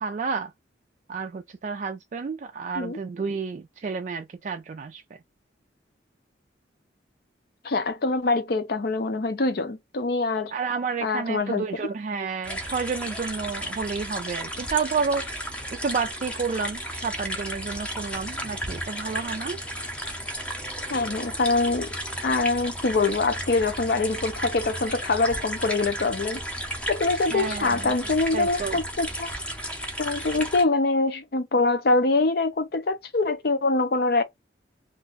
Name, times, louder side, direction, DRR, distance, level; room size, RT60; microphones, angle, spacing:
voice 1, 0.0-0.5 1.1-5.2 10.5-15.3 15.7-19.6 27.3-28.8, right 5 dB, 40° right, 0.3 m, -30 dB
voice 2, 7.6-10.5 11.0-11.6 20.9-21.9 22.2-26.4 26.9-29.3 30.0-34.2, left 3 dB, 55° left, 0.5 m, -24 dB
sound 1, 12.4-30.6, equal, 5° left, 0.6 m, -34 dB
2.5 x 2.2 x 3.8 m
head